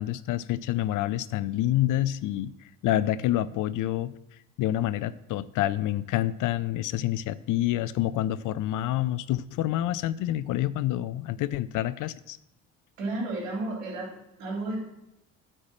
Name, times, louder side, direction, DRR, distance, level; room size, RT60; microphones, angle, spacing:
voice 1, 0.0-2.5 2.8-4.1 4.6-12.4, left 13 dB, 50° left, 17 dB, 0.5 m, -27 dB
voice 2, 13.0-14.1 14.4-14.8, right 2 dB, 80° right, -3 dB, 3.5 m, -32 dB
8.8 x 4.7 x 7.5 m, 0.89 s
hypercardioid pair, 60°, 39 cm